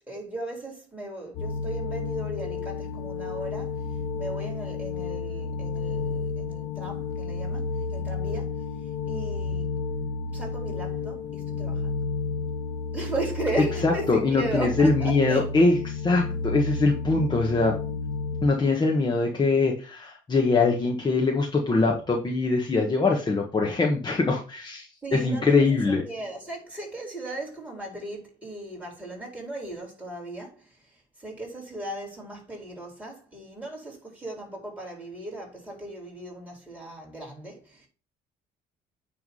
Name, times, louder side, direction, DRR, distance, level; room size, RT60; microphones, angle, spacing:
voice 1, 0.1-3.8 4.1-9.7 10.3-12.0 12.9-15.4 25.0-37.9, right 2 dB, 10° right, 4.2 m, -37 dB
sound 1, 1.3-18.5, left 4 dB, 60° left, 1.7 m, -31 dB
voice 2, 13.8-17.8 18.4-26.0, left 3 dB, 25° left, 1.4 m, -23 dB
9.4 x 3.6 x 5.5 m
cardioid pair, 110°, 17 cm